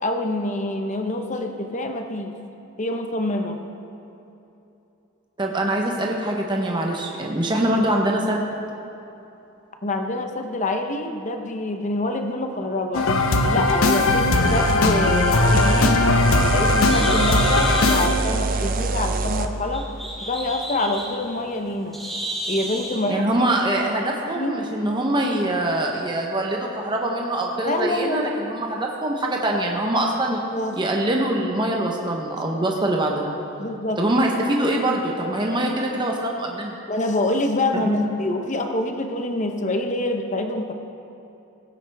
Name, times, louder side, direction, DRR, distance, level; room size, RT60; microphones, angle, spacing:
voice 1, 0.0-2.3 2.8-3.6 9.8-13.1 13.5-16.0 16.5-19.8 20.3-22.0 22.5-23.4 24.3-24.6 27.7-28.3 30.5-30.8 33.6-34.0 35.7-35.9 36.9-40.7, left 2 dB, 35° left, 5 dB, 0.9 m, -26 dB
voice 2, 5.4-8.4 23.1-30.4 30.8-33.3 34.0-36.7 37.8-38.0, right 1 dB, 20° right, 0 dB, 0.9 m, -23 dB
sound 1, 12.9-18.1, left 2 dB, 80° left, 0.9 m, -19 dB
sound 2, 13.7-19.5, right 3 dB, 45° right, 0.6 m, -26 dB
Bird, 15.8-23.1, right 1 dB, ahead, 2.5 m, -33 dB
17.0 x 9.2 x 3.5 m, 2.9 s
head